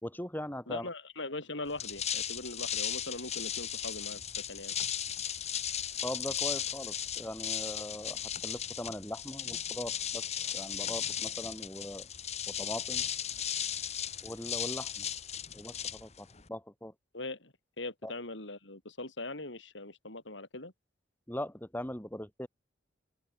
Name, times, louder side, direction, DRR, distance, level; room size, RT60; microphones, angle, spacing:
voice 1, 0.0-0.9 6.0-12.1 12.5-13.0 14.2-15.1 15.5-16.9 18.0-18.1 21.3-22.5, left 1 dB, 10° left, 3.3 m, -40 dB
voice 2, 0.7-4.7 17.1-20.7, left 2 dB, 80° left, 5.8 m, -41 dB
sound 1, 1.7-16.5, left 9 dB, 35° left, 1.8 m, -36 dB
open air
head